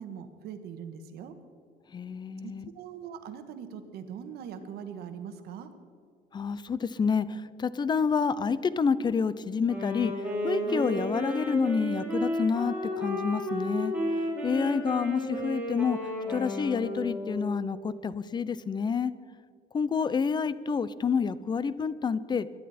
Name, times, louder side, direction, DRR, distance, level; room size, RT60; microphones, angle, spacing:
voice 1, 0.0-1.3 2.4-5.7, right 7 dB, 75° right, 8 dB, 1.5 m, -41 dB
voice 2, 1.9-2.7 6.3-16.0 16.3-19.1 19.7-22.5, left 5 dB, 25° left, 16 dB, 0.6 m, -28 dB
Wind instrument woodwind instrument, 9.6-17.7, equal, 10° right, 4.4 m, -32 dB
22.0 x 10.5 x 4.3 m, 2.3 s
cardioid pair, 125°, 16 cm